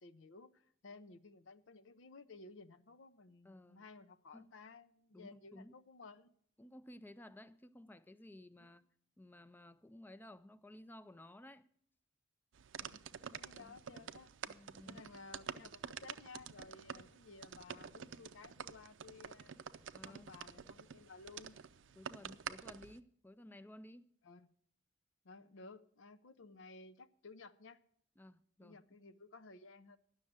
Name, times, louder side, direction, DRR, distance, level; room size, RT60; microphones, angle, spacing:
voice 1, 0.0-6.3 8.6-8.7 12.8-14.3 14.8-19.6 20.0-21.6 24.2-24.5 25.2-27.8 28.6-30.0, left 3 dB, 80° left, 0.6 m, -56 dB
voice 2, 3.4-3.8 4.3-4.5 5.1-5.7 6.6-8.8 9.2-11.7 13.6-13.8 14.5-15.1 19.9-20.3 22.0-24.1 28.2-28.8, left 1 dB, 10° left, 0.4 m, -56 dB
sound 1, 12.5-23.0, right 7 dB, 75° right, 0.5 m, -49 dB
11.0 x 6.4 x 8.7 m
head